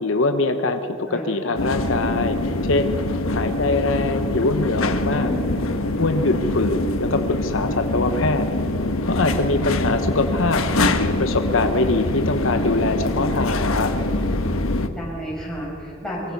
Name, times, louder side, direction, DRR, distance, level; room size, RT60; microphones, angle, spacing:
voice 1, 0.0-2.9 3.3-5.3 6.0-8.5 9.1-10.6 11.0-13.9, left 2 dB, 70° left, 8 dB, 1.0 m, -23 dB
sound 1, 1.5-14.9, left 2 dB, 90° left, 1.3 m, -24 dB
voice 2, 5.1-5.5 14.9-16.3, equal, 5° left, -5 dB, 6.8 m, -31 dB
23.5 x 22.5 x 5.4 m, 2.9 s
head